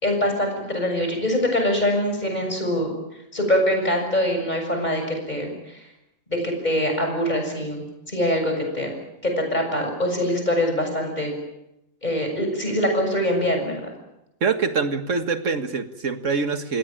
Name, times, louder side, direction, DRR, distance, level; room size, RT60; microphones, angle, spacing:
voice 1, 0.0-3.0 3.3-5.8 6.3-8.9 9.2-11.3 12.0-13.9, left 1 dB, 35° left, 3 dB, 7.1 m, -24 dB
voice 2, 14.4-16.8, right 5 dB, 90° right, 9 dB, 2.0 m, -24 dB
27.0 x 19.0 x 9.0 m, 0.89 s
omnidirectional pair, 1.2 m